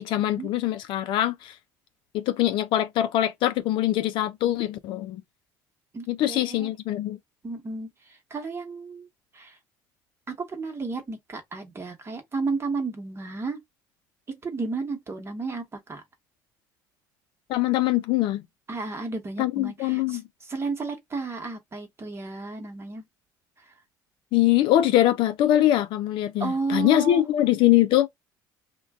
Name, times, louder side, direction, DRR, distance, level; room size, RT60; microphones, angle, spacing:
voice 1, 0.0-1.5 2.1-5.2 6.1-7.2 17.5-18.4 19.4-20.2 24.3-28.1, left 13 dB, 65° left, 0.4 m, -23 dB
voice 2, 5.9-6.7 7.4-7.9 8.3-9.1 9.3-9.6 10.3-13.6 14.3-16.0 18.7-20.2 20.5-23.0 26.4-27.2, right 4 dB, 30° right, 1.1 m, -32 dB
2.4 x 2.2 x 3.4 m
supercardioid pair, 80°, 9 cm